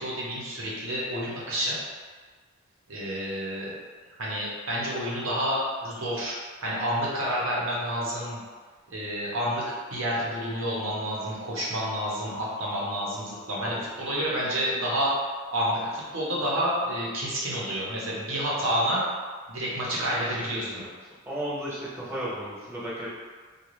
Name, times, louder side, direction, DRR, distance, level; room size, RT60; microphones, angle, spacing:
voice 1, 0.0-1.7 2.9-3.7 4.2-8.4 8.9-9.6 9.9-15.1 15.5-19.0 19.5-20.7, equal, 85° right, -6 dB, 0.8 m, -29 dB
voice 2, 20.1-20.9 21.3-23.1, right 1 dB, 10° right, -9 dB, 0.7 m, -35 dB
2.5 x 2.3 x 3.1 m, 1.5 s
head